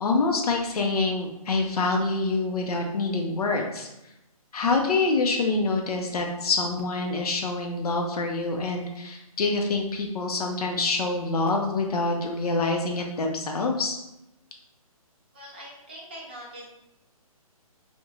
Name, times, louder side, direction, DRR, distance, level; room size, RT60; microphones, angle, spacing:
voice 1, 0.0-3.9 4.5-14.0, left 3 dB, 85° left, 2 dB, 0.5 m, -26 dB
voice 2, 15.3-16.6, equal, 15° right, -5 dB, 0.4 m, -42 dB
2.9 x 2.1 x 2.3 m, 0.90 s
hypercardioid pair, 165°, 19 cm